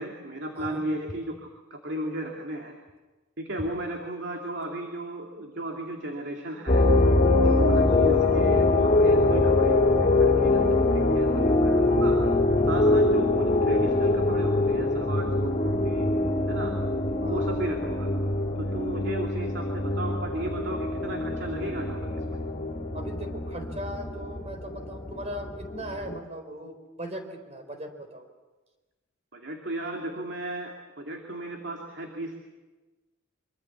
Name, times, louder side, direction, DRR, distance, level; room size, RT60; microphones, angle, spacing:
voice 1, 0.0-1.4 1.7-2.8 3.4-6.9 7.4-12.2 12.7-16.1 16.5-16.7 17.2-22.4 29.3-32.4, right 1 dB, 60° right, 1 dB, 2.6 m, -35 dB
sound 1, 6.7-26.2, left 2 dB, 35° left, 2.8 m, -23 dB
voice 2, 7.4-7.9 17.2-17.5 22.9-28.3, right 1 dB, 35° right, 6 dB, 4.3 m, -39 dB
25.0 x 24.5 x 7.1 m, 1.2 s
head